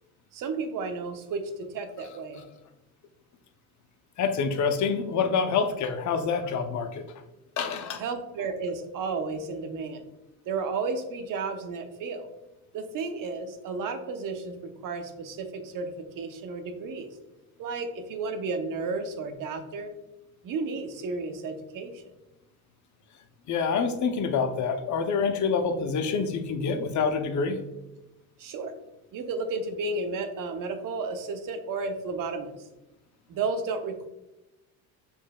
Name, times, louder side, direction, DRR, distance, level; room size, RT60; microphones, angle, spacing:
voice 1, 0.3-2.4 8.0-10.1 10.5-12.3 12.7-17.1 17.6-19.9 20.4-22.0 28.4-28.7 29.1-32.5 33.3-34.1, right 4 dB, 55° right, 7 dB, 0.8 m, -33 dB
voice 2, 4.2-7.0 7.6-8.0 23.5-27.6, left 5 dB, 45° left, 6 dB, 0.7 m, -27 dB
7.0 x 3.1 x 2.3 m, 0.98 s
cardioid pair, 100°, 40 cm